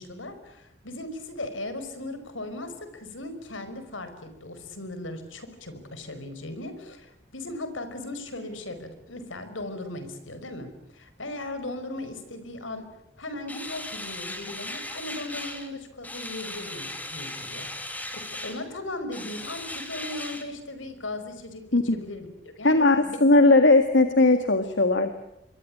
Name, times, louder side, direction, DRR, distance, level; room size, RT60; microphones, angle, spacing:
voice 1, 0.0-12.9 13.2-23.2, left 2 dB, 90° left, 10 dB, 5.2 m, -38 dB
sound 1, 13.5-15.7 16.0-18.6 19.1-20.4, left 1 dB, 10° left, 3.0 m, -37 dB
voice 2, 22.6-25.1, left 2 dB, 75° left, 7 dB, 1.9 m, -18 dB
26.5 x 23.0 x 8.7 m, 0.84 s
head